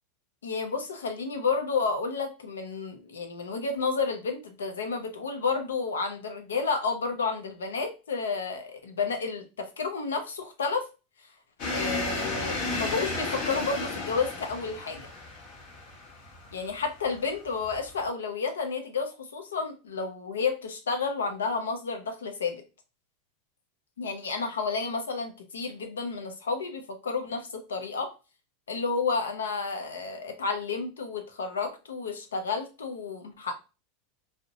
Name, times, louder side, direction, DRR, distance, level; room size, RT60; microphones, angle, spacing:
voice 1, 0.4-10.9 11.7-15.1 16.5-22.6 24.0-28.1 28.7-33.5, left 4 dB, 85° left, 5 dB, 0.5 m, -31 dB
sound 1, 11.6-18.1, left 2 dB, 55° left, 0.8 m, -34 dB
2.7 x 2.1 x 2.6 m, 0.30 s
hypercardioid pair, 95°, 0 cm